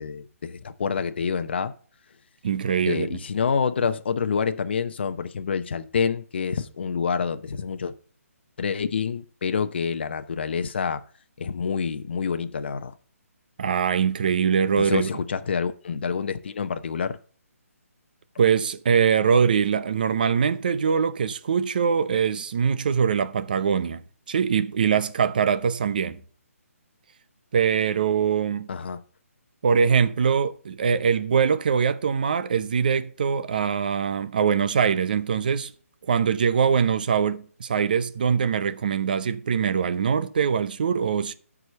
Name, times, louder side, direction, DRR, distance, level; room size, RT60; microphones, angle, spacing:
voice 1, 0.0-1.7 2.8-7.9 8.6-11.0 11.4-13.0 14.8-17.2 28.7-29.0, left 6 dB, 45° left, 0.8 m, -27 dB
voice 2, 2.4-3.2 13.6-15.1 18.4-24.0 24.3-26.2 27.5-28.7 29.6-35.7 36.1-41.3, right 6 dB, 35° right, 0.7 m, -23 dB
13.0 x 5.0 x 4.1 m
hypercardioid pair, 170°, 8 cm